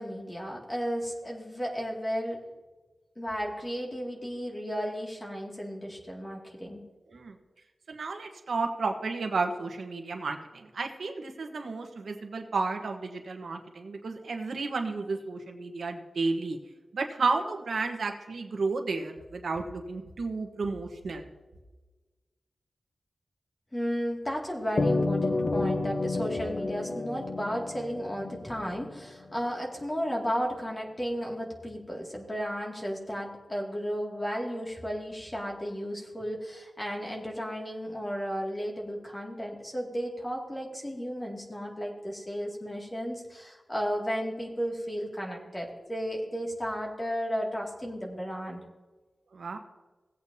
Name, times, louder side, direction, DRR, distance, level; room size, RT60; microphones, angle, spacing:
voice 1, 0.0-2.4 3.2-6.8 23.7-48.6, equal, 20° left, -1 dB, 2.3 m, -34 dB
voice 2, 7.9-16.6 16.9-21.3 49.3-49.6, right 3 dB, 85° right, 4 dB, 1.2 m, -32 dB
sound 1, 24.8-29.4, left 2 dB, 50° left, 0.9 m, -30 dB
17.5 x 8.4 x 2.8 m, 1.2 s
wide cardioid pair, 115°, 0 cm